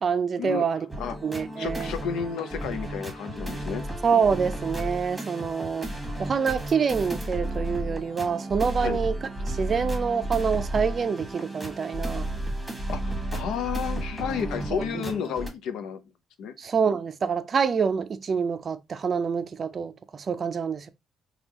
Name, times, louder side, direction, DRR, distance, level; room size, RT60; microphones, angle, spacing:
voice 1, 0.0-0.9 1.2-1.9 4.0-5.9 6.2-9.2 9.5-12.3 14.9-15.1 16.6-20.9, right 6 dB, 45° right, 0.4 m, -26 dB
sound 1, 0.9-15.5, right 1 dB, 5° right, 1.2 m, -33 dB
voice 2, 1.6-3.8 8.8-9.0 12.9-16.0 16.4-16.5, left 7 dB, 85° left, 0.5 m, -32 dB
3.5 x 2.3 x 2.9 m
cardioid pair, 90°, 0 cm